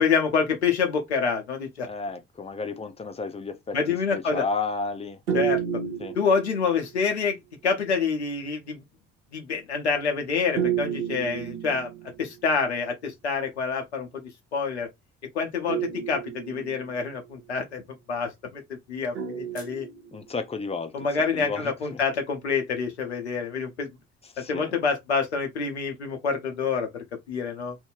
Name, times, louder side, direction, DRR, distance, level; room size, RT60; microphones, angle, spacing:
voice 1, 0.0-1.9 3.7-4.5 5.3-5.6 6.1-7.4 7.6-8.8 9.3-11.9 12.2-14.2 14.5-14.9 15.3-17.8 18.1-18.6 18.9-19.9 20.9-23.9 24.4-27.8, left 5 dB, 85° left, 0.6 m, -27 dB
voice 2, 1.9-3.8 4.1-5.2 6.0-6.2 20.1-22.0 24.3-24.7, left 4 dB, 20° left, 0.6 m, -32 dB
sound 1, 5.3-7.0 10.6-12.4 15.7-17.2 19.2-20.4, right 9 dB, 80° right, 0.6 m, -31 dB
2.5 x 2.1 x 3.7 m
figure-of-eight pair, 45°, 32 cm